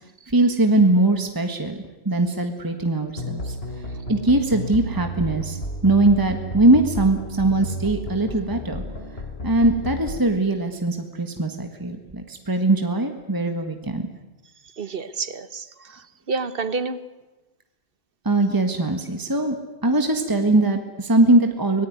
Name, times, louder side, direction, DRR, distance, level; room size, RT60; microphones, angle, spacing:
voice 1, 0.3-1.8 2.0-3.5 4.1-8.8 9.4-14.0 18.2-19.6 19.8-21.9, right 2 dB, 20° right, 6 dB, 1.6 m, -21 dB
sound 1, 3.2-10.2, equal, 65° left, 3.8 m, -32 dB
voice 2, 14.8-17.0, right 4 dB, 60° right, 14 dB, 1.3 m, -29 dB
24.5 x 18.5 x 9.5 m, 1.1 s
omnidirectional pair, 1.1 m